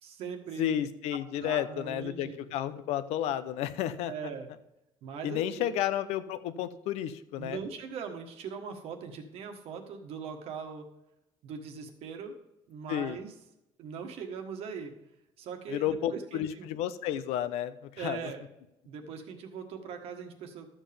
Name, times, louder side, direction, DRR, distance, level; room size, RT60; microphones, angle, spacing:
voice 1, 0.0-0.9 1.3-2.4 4.1-4.5 5.0-5.7 7.4-10.9 11.4-12.3 12.7-13.3 13.8-14.9 15.4-16.7 18.0-18.5 18.8-20.7, right 6 dB, 70° right, 4 dB, 1.5 m, -40 dB
voice 2, 0.6-4.1 5.2-7.6 12.9-13.2 15.7-18.2, left 11 dB, 85° left, 13 dB, 0.7 m, -32 dB
12.5 x 7.3 x 3.5 m, 0.89 s
cardioid pair, 130°, 11 cm